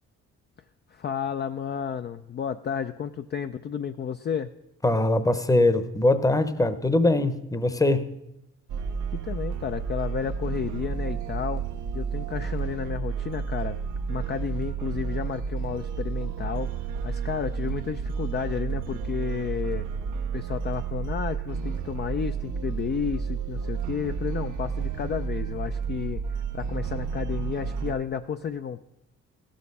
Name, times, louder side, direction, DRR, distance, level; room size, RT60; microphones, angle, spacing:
voice 1, 0.9-4.5 9.1-11.6 11.9-13.8 14.1-19.9 20.3-28.8, left 8 dB, 35° left, 8 dB, 0.4 m, -32 dB
voice 2, 4.8-8.1, left 2 dB, 10° left, 12 dB, 0.8 m, -22 dB
sound 1, 8.7-28.0, right 6 dB, 80° right, 0.8 m, -31 dB
16.0 x 6.5 x 5.4 m, 0.87 s
cardioid pair, 90°, 30 cm